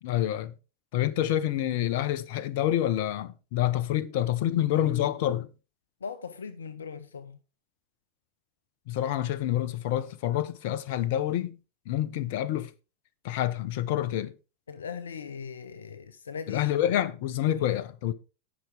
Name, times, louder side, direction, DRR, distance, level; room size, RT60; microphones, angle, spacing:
voice 1, 0.0-0.5 0.9-5.5 8.9-11.6 11.9-12.7 13.2-14.3 16.5-18.1, left 12 dB, 60° left, 1.0 m, -27 dB
voice 2, 6.0-7.4 14.7-16.8, left 6 dB, 85° left, 0.7 m, -39 dB
18.0 x 6.1 x 3.5 m
hypercardioid pair, 85°, 0 cm